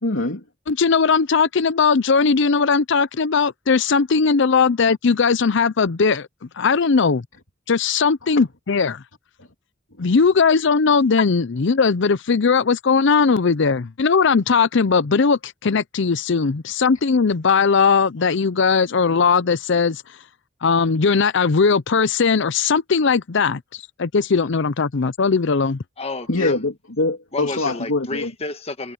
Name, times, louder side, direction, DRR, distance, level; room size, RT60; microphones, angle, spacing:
voice 1, 0.0-0.5 4.9-5.0 8.2-8.4 9.4-9.5 9.9-10.1 26.3-28.3, left 2 dB, 85° left, 2.8 m, -24 dB
voice 2, 0.7-6.3 6.6-7.2 7.7-9.0 10.0-20.0 20.6-23.6 24.0-25.8, left 5 dB, 65° left, 0.6 m, -18 dB
voice 3, 26.0-26.6 27.3-28.9, left 2 dB, 30° left, 1.4 m, -30 dB
head